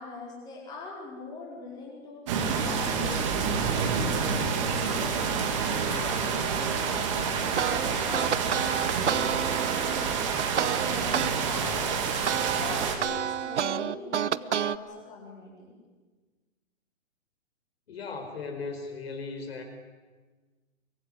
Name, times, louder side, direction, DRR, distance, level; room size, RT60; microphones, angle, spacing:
voice 1, 0.0-12.0 12.6-15.7, left 3 dB, 10° left, -4 dB, 4.7 m, -42 dB
sound 1, 2.3-13.0, right 6 dB, 25° right, 2.9 m, -28 dB
sound 2, 7.6-11.3 11.7-14.8, right 9 dB, 60° right, 0.9 m, -29 dB
voice 2, 17.9-19.6, left 4 dB, 50° left, 5 dB, 4.6 m, -37 dB
23.5 x 22.0 x 9.6 m, 1.4 s
hypercardioid pair, 170°, 40 cm